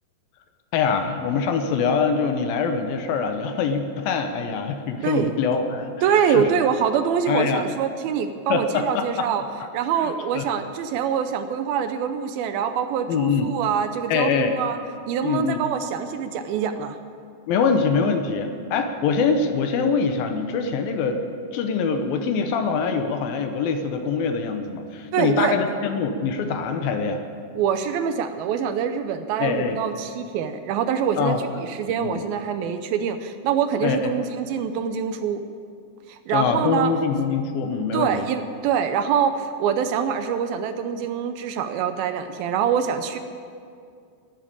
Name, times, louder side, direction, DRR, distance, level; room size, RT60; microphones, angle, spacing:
voice 1, 0.7-6.5 7.3-7.6 8.5-9.3 10.0-10.4 13.1-13.5 14.1-14.5 15.2-15.6 17.5-21.2 21.5-27.2 29.4-29.8 31.2-31.4 32.0-32.3 33.8-34.1 36.3-38.3, left 5 dB, 75° left, 6 dB, 2.5 m, -24 dB
voice 2, 5.0-5.3 6.0-9.4 9.7-14.8 15.1-17.0 25.1-25.6 27.6-35.4 36.1-36.9 37.9-43.2, right 7 dB, 80° right, 9 dB, 2.4 m, -25 dB
12.5 x 11.0 x 8.8 m, 2.3 s
omnidirectional pair, 4.6 m